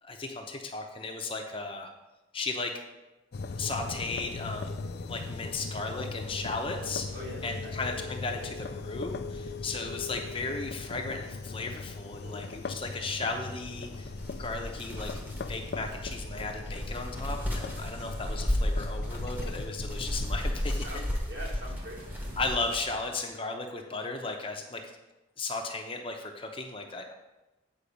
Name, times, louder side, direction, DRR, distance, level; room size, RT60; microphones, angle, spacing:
voice 1, 0.0-1.9 2.3-2.8 3.6-4.7 5.1-7.1 7.4-14.1 14.4-20.9 22.4-24.9 25.4-27.1, left 3 dB, 25° left, 2 dB, 0.7 m, -35 dB
sound 1, 3.3-20.4, left 3 dB, 55° left, 0.4 m, -39 dB
voice 2, 7.1-7.7 12.2-12.4 17.7-18.1 20.6-22.3, equal, 65° right, -5 dB, 2.8 m, -44 dB
sound 2, 13.6-22.9, left 1 dB, 10° right, 1.0 m, -34 dB
sound 3, 17.3-23.1, equal, 50° right, 2.3 m, -49 dB
8.5 x 5.2 x 5.2 m, 1.0 s
head